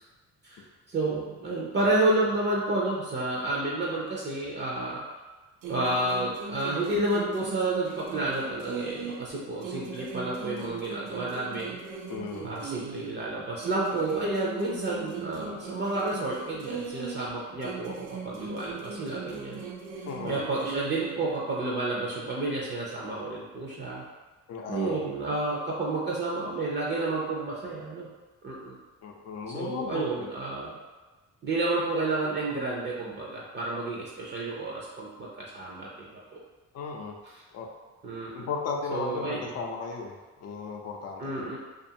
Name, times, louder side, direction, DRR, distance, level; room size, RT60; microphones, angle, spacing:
voice 1, 0.4-5.0 5.7-11.8 12.4-19.6 20.2-24.0 24.7-28.1 28.4-28.8 29.5-30.8 31.4-35.9 36.3-36.4 38.0-38.5 38.9-39.4 41.2-41.6, right 2 dB, 35° right, -4 dB, 0.5 m, -30 dB
sound 1, 5.6-9.3 9.6-13.2 13.6-17.3 17.6-21.2, right 5 dB, 90° right, 0.5 m, -39 dB
voice 2, 12.1-12.5 20.1-20.5 24.5-25.0 29.0-30.3 36.7-37.2 37.5-37.7 38.3-41.6, left 5 dB, 55° left, 2 dB, 0.5 m, -35 dB
2.5 x 2.4 x 2.7 m, 1.2 s
cardioid pair, 90°, 30 cm